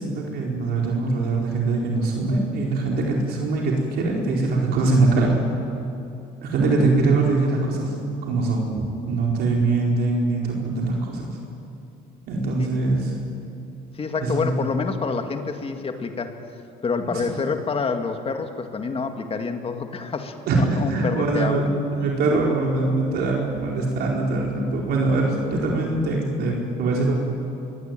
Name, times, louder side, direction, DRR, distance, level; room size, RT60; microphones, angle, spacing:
voice 1, 0.0-5.4 6.4-8.0 8.2-11.4 12.3-13.1 14.2-14.7 17.1-17.2 20.5-27.1, right 3 dB, 70° right, -1 dB, 4.7 m, -22 dB
voice 2, 13.9-16.4 16.8-21.6, left 4 dB, 35° left, 6 dB, 2.2 m, -27 dB
24.0 x 22.0 x 9.2 m, 2.6 s
cardioid pair, 110°, 17 cm